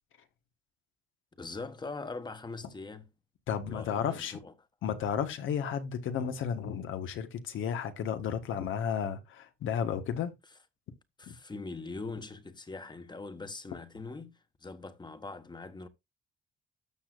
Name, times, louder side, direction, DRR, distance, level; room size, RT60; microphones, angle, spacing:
voice 1, 1.4-3.1 3.7-4.5 11.2-15.9, left 3 dB, 20° left, 1.3 m, -42 dB
voice 2, 3.5-4.4 4.8-10.3 11.3-11.4, left 8 dB, 80° left, 1.4 m, -33 dB
12.5 x 6.7 x 2.5 m
cardioid pair, 90°, 20 cm